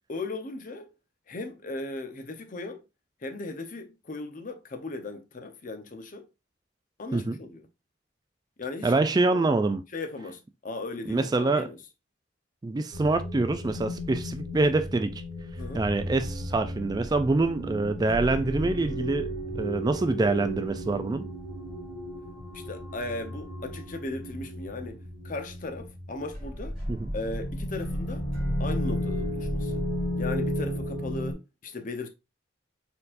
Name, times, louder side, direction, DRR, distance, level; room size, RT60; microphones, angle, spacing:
voice 1, 0.1-0.9 1.3-2.8 3.2-6.3 7.0-7.6 8.6-8.9 9.3-9.6 9.9-11.8 15.6-15.8 22.5-25.0 25.2-26.7 27.1-28.3 28.6-29.8 30.2-32.1, left 2 dB, 45° left, 0.7 m, -37 dB
voice 2, 8.8-9.8 11.1-11.7 12.6-15.2 15.7-21.3 26.9-27.1, right 3 dB, 20° right, 0.3 m, -25 dB
sound 1, 12.9-31.3, equal, ahead, 2.6 m, -34 dB
4.4 x 4.0 x 2.5 m
head